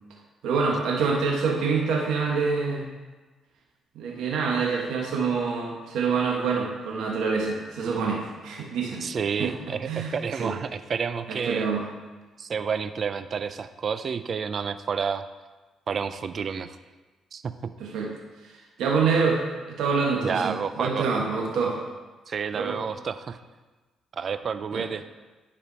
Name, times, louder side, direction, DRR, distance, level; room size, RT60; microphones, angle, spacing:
voice 1, 0.4-2.9 3.9-9.1 9.4-9.5 9.9-10.1 10.4-10.5 11.3-11.8 17.8-18.1 18.4-18.5 18.8-21.8 22.5-22.8 24.7-24.8, right 5 dB, 80° right, -1 dB, 1.4 m, -26 dB
voice 2, 9.0-11.7 12.4-15.2 15.9-16.8 17.3-17.7 20.2-21.1 22.3-23.4 24.1-25.0, right 6 dB, 50° right, 12 dB, 0.4 m, -30 dB
10.0 x 5.0 x 4.1 m, 1.2 s
cardioid pair, 90°, 0 cm